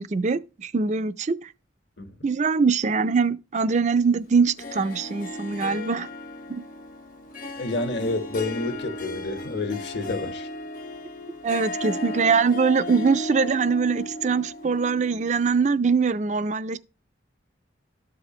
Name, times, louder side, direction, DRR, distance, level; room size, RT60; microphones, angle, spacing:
voice 1, 0.0-1.5 2.2-6.1 11.4-16.8, right 5 dB, 40° right, 0.4 m, -23 dB
Harp, 4.6-15.7, left 1 dB, 45° left, 1.1 m, -36 dB
voice 2, 7.6-10.5, left 2 dB, 65° left, 1.4 m, -29 dB
13.0 x 4.9 x 3.0 m
head